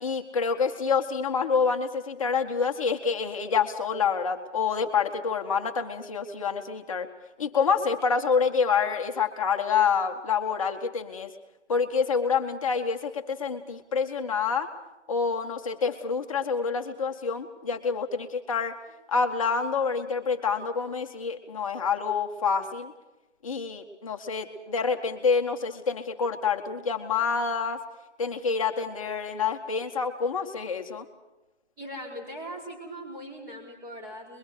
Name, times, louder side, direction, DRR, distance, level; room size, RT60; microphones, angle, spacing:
voice 1, 0.0-7.1 7.4-11.3 11.7-14.7 15.1-18.8 19.1-22.9 23.4-27.8 28.2-31.1, left 5 dB, 30° left, 5 dB, 1.8 m, -27 dB
voice 2, 31.8-34.4, equal, 10° right, -3 dB, 4.9 m, -40 dB
29.5 x 23.0 x 4.8 m, 1.0 s
figure-of-eight pair, 150°, 35 cm